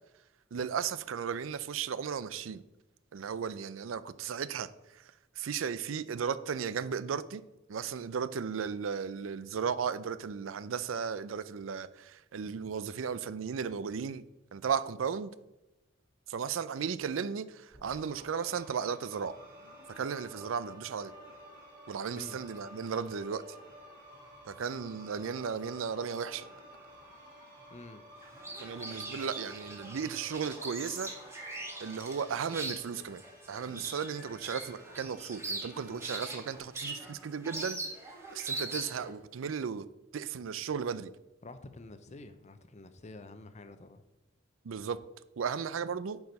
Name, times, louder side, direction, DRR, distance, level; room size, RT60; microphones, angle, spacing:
voice 1, 0.5-2.6 3.1-7.4 7.7-14.2 14.5-15.3 16.3-19.4 19.9-21.1 21.9-23.4 24.5-26.5 28.6-31.1 31.8-33.2 33.5-37.8 38.3-39.8 40.1-41.1 44.6-45.0 45.4-46.2, right 6 dB, 90° right, 0.4 m, -35 dB
sound 1, 17.7-36.6, equal, 40° right, 3.4 m, -52 dB
voice 2, 27.7-28.0 33.7-33.9 41.4-44.0, left 2 dB, 35° left, 0.6 m, -49 dB
sound 2, 28.2-39.1, right 2 dB, 15° right, 1.5 m, -41 dB
9.5 x 4.7 x 5.3 m
head